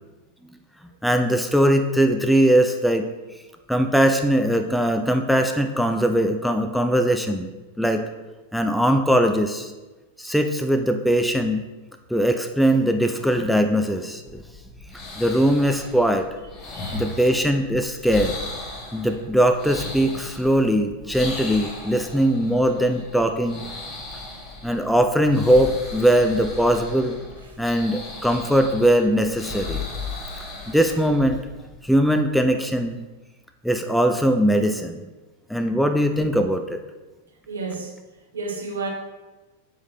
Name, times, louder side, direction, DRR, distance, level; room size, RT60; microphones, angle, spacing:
voice 1, 1.0-3.1 3.7-7.5 7.8-8.1 8.5-9.7 10.2-11.6 12.1-14.4 15.2-16.3 16.9-18.4 18.9-23.6 24.6-27.2 27.6-29.8 30.7-31.4 31.8-33.0 33.6-35.0 35.5-36.8, equal, ahead, 6 dB, 0.4 m, -20 dB
sound 1, 14.3-31.8, left 3 dB, 25° left, 1.5 m, -37 dB
voice 2, 16.7-17.0 27.4-27.6 28.3-28.4 37.5-38.0 38.3-38.9, right 3 dB, 70° right, 1 dB, 1.3 m, -32 dB
6.8 x 5.0 x 4.1 m, 1.2 s
figure-of-eight pair, 90°, 0 cm